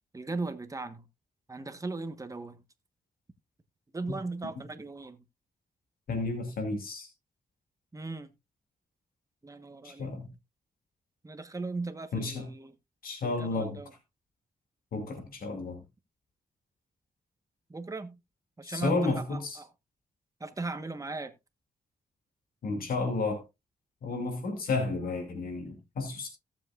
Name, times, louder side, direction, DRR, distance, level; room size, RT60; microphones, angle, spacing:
voice 1, 0.1-1.1 1.5-2.6 3.9-5.2 7.9-8.3 9.4-10.1 11.2-12.7 13.2-13.9 17.7-18.2 18.6-19.7 20.4-21.3, right 3 dB, 20° right, 1.3 m, -38 dB
voice 2, 6.1-7.1 9.8-10.3 12.1-12.5 13.0-13.8 14.9-15.8 18.6-19.6 22.6-23.4 24.0-26.3, left 3 dB, 80° left, 2.6 m, -32 dB
17.0 x 7.4 x 2.5 m
cardioid pair, 90°, 15 cm